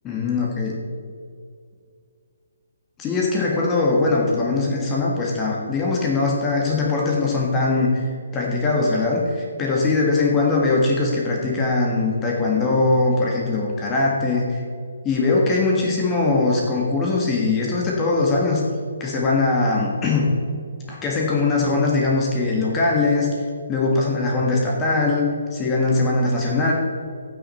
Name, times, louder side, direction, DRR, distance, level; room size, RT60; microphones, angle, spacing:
voice 1, 0.0-0.7 3.0-8.0 8.3-14.6 15.0-18.6 19.0-20.3 20.9-23.3 23.7-26.7, left 3 dB, 15° left, -3 dB, 1.8 m, -21 dB
14.5 x 6.3 x 4.4 m, 2.3 s
figure-of-eight pair, 140°, 0 cm